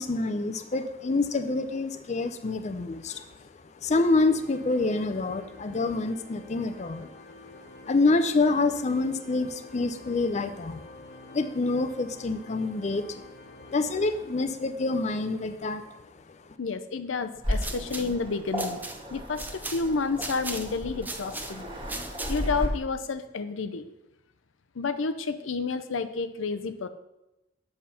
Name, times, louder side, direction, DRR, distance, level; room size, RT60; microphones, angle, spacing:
voice 1, 0.0-3.4 3.8-7.1 7.8-10.8 11.3-13.2 13.6-15.9, left 3 dB, 35° left, 8 dB, 0.5 m, -27 dB
Organ, 4.2-14.9, left 1 dB, 55° left, 1.1 m, -49 dB
voice 2, 16.6-18.8 19.1-21.6 22.3-23.8 24.8-26.9, left 4 dB, 85° left, 11 dB, 0.6 m, -30 dB
sound 1, 17.4-22.6, right 2 dB, 10° right, 0.5 m, -39 dB
Waves surf, 17.4-22.7, equal, 30° right, 1.7 m, -34 dB
7.5 x 5.7 x 5.7 m, 0.94 s
head